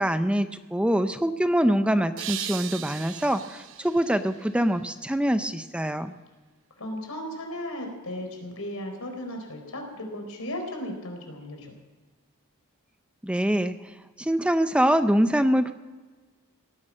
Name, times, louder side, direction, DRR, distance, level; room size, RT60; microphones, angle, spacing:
voice 1, 0.0-6.1 13.2-13.8 14.2-15.7, equal, 5° right, 10 dB, 0.5 m, -24 dB
sound 1, 2.2-5.3, right 10 dB, 65° right, 0.9 m, -39 dB
voice 2, 6.8-11.7, left 1 dB, 80° left, 3 dB, 4.3 m, -35 dB
17.5 x 11.0 x 7.5 m, 1.3 s
head